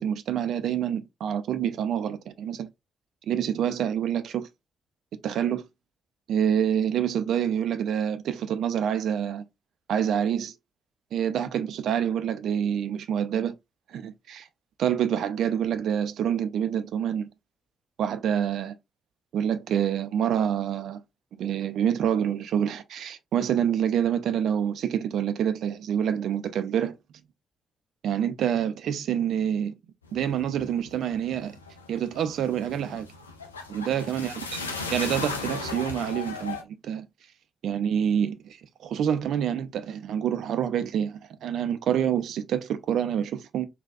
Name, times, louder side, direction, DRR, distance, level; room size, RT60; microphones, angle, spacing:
voice 1, 0.0-2.7 3.3-4.5 5.2-5.7 6.3-9.4 9.9-10.5 11.1-13.5 13.9-14.5 14.8-17.3 18.0-18.7 19.3-21.0 21.4-27.0 28.0-29.7 30.1-31.5 31.9-33.1 33.7-34.3 34.9-36.6 36.8-37.1 37.6-38.6 38.8-43.7, right 9 dB, 55° right, 0.4 m, -27 dB
sound 1, 30.0-36.6, left 4 dB, 85° left, 0.4 m, -36 dB
3.9 x 2.3 x 2.4 m
figure-of-eight pair, 40°, 0 cm